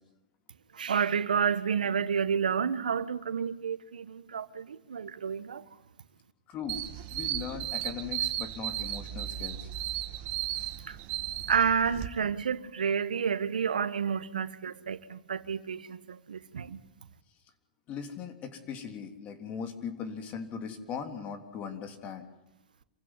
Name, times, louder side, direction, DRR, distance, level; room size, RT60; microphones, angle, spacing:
voice 1, 0.7-5.6 10.9-11.0 11.5-16.8, right 7 dB, 85° right, 1.3 m, -30 dB
voice 2, 6.5-6.8 7.1-9.7 17.9-22.3, left 6 dB, 35° left, 3.4 m, -39 dB
sound 1, 6.7-12.1, right 13 dB, 45° right, 2.1 m, -35 dB
27.5 x 15.5 x 9.8 m
hypercardioid pair, 120°, 4 cm